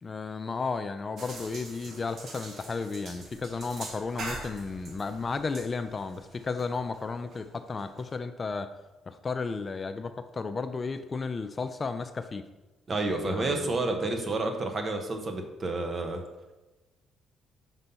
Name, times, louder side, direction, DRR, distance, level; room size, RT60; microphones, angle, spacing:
voice 1, 0.0-8.7 9.1-12.4 13.2-13.8, left 4 dB, 35° left, 10 dB, 0.4 m, -33 dB
sound 1, 1.2-8.1, right 2 dB, 60° right, 1.3 m, -44 dB
voice 2, 12.9-16.2, right 2 dB, 40° right, 4 dB, 1.1 m, -30 dB
5.4 x 4.0 x 5.6 m, 1.1 s
supercardioid pair, 65°, 0 cm